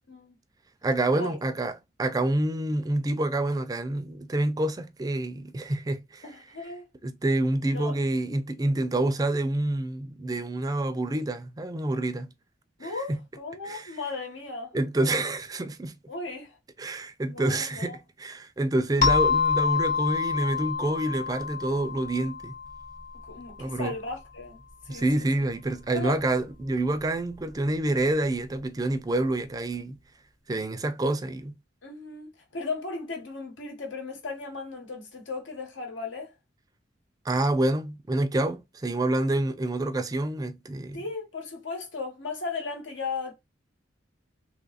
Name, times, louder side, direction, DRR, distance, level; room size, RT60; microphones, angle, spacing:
voice 1, 0.8-1.7 2.0-6.2 7.0-12.3 12.8-13.2 13.6-13.9 14.7-15.9 16.8-22.5 23.6-23.9 24.9-30.0 30.5-31.5 37.3-41.0, right 2 dB, 20° right, 0.4 m, -27 dB
voice 2, 6.2-6.9 7.7-7.9 12.8-14.7 16.1-16.6 17.2-18.0 23.3-25.3 25.9-26.2 31.8-36.3 40.9-43.3, left 4 dB, 85° left, 1.3 m, -36 dB
sound 1, 19.0-23.4, left 6 dB, 45° left, 0.8 m, -27 dB
3.0 x 2.4 x 4.0 m
head